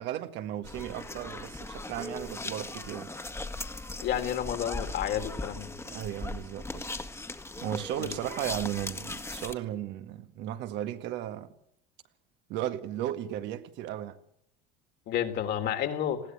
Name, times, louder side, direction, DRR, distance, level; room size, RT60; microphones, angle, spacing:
voice 1, 0.0-3.1 5.8-6.9 7.6-11.5 12.5-14.2, right 12 dB, 65° right, 1.9 m, -35 dB
sound 1, 0.6-9.5, left 2 dB, 15° left, 1.9 m, -39 dB
voice 2, 4.0-5.7 8.0-8.2 15.1-16.2, left 10 dB, 60° left, 3.5 m, -30 dB
20.5 x 16.0 x 8.2 m
hypercardioid pair, 75°, 19 cm